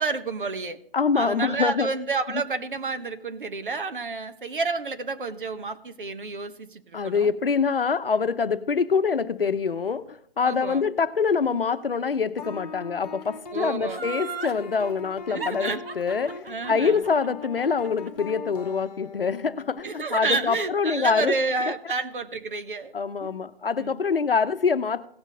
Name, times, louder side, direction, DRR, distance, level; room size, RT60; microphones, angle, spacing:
voice 1, 0.0-0.8 1.1-7.3 10.4-10.8 13.5-14.1 15.3-15.8 16.4-17.0 19.8-22.9 23.2-23.3 23.8-24.0, right 4 dB, 60° right, 9 dB, 1.1 m, -30 dB
voice 2, 0.9-1.9 6.9-21.3 22.9-25.1, left 5 dB, 70° left, 12 dB, 0.8 m, -25 dB
sound 1, 12.4-19.8, left 4 dB, 40° left, 1.2 m, -40 dB
Laughter, 13.9-14.6 15.4-18.5 18.9-19.0, right 5 dB, 80° right, 1.3 m, -36 dB
17.0 x 6.4 x 3.7 m, 0.63 s
figure-of-eight pair, 145°, 30 cm